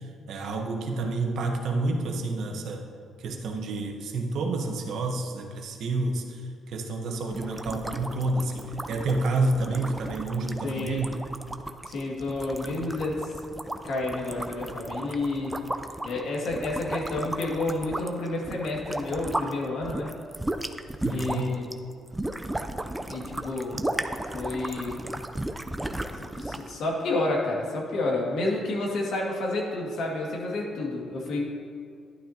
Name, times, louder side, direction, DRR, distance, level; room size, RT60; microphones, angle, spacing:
voice 1, 0.3-2.8 3.2-6.4 6.7-11.2 21.0-21.6, right 2 dB, 75° right, 3 dB, 1.1 m, -29 dB
sound 1, 7.3-19.5 19.8-26.7, right 1 dB, 10° right, 0.6 m, -35 dB
voice 2, 10.6-11.1 11.9-13.3 13.8-15.6 16.0-20.1 21.1-21.7 23.1-23.8 24.2-25.0 26.2-31.5, left 2 dB, 75° left, -2 dB, 2.3 m, -30 dB
12.0 x 11.0 x 2.9 m, 2.2 s
cardioid pair, 90°, 0 cm